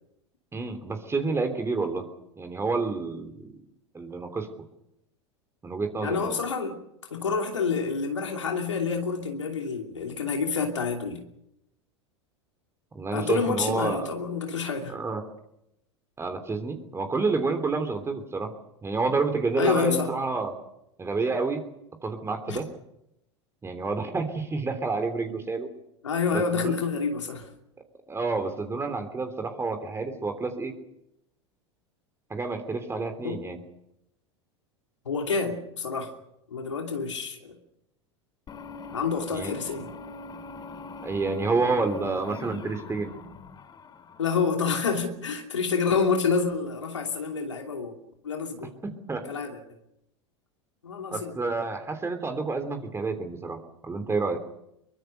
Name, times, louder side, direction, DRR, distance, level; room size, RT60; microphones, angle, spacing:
voice 1, 0.5-2.0 2.4-3.5 3.9-4.5 5.6-6.4 12.9-14.1 14.9-15.2 16.2-18.5 18.8-20.5 21.0-21.6 22.0-22.7 23.6-25.7 26.5-26.7 28.1-30.7 32.3-33.6 39.3-39.6 41.0-43.1 48.8-49.2 51.1-54.4, right 3 dB, 15° right, 7 dB, 3.2 m, -29 dB
voice 2, 6.0-6.8 7.1-11.2 13.1-14.9 19.5-20.1 22.5-22.6 26.0-27.5 33.2-33.4 35.0-36.1 36.5-37.6 38.9-39.9 44.2-48.0 48.2-48.7 49.3-49.6 50.8-51.3, left 5 dB, 85° left, 3 dB, 2.8 m, -28 dB
sound 1, 38.5-44.8, left 3 dB, 30° left, 2.1 m, -42 dB
24.5 x 23.0 x 6.7 m, 0.82 s
hypercardioid pair, 85°, 15 cm